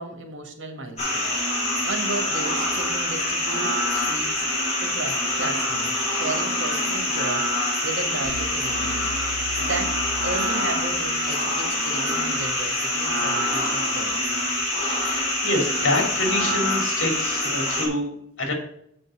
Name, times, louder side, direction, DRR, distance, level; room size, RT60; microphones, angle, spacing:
voice 1, 0.0-9.1 9.6-14.2, right 3 dB, 70° right, 4 dB, 1.7 m, -34 dB
sound 1, 1.0-17.9, left 1 dB, 35° left, 3.0 m, -25 dB
sound 2, 8.2-11.2, equal, 20° right, 3.4 m, -38 dB
voice 2, 14.9-18.1 18.4-18.5, left 1 dB, 75° left, 2 dB, 2.8 m, -26 dB
7.7 x 5.3 x 6.3 m, 0.72 s
head